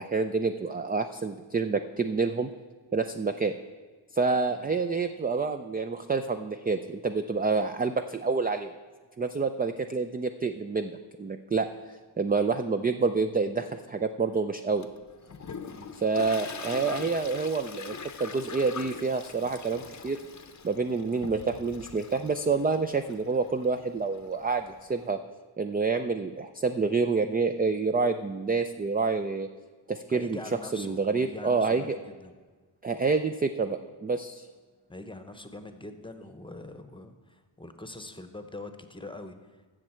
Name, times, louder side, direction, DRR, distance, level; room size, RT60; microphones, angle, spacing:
voice 1, 0.0-2.5 2.9-3.5 4.1-8.7 9.2-14.9 16.0-20.2 20.6-25.2 25.6-29.5 29.9-30.4 30.7-32.0 32.8-34.5, right 4 dB, 20° right, 8 dB, 0.4 m, -28 dB
Toilet flush, 14.8-25.1, left 5 dB, 35° left, 0.7 m, -43 dB
voice 2, 30.1-32.3 34.9-39.6, left 2 dB, 10° left, 8 dB, 0.9 m, -43 dB
15.5 x 6.2 x 4.4 m, 1.4 s
cardioid pair, 65°, 48 cm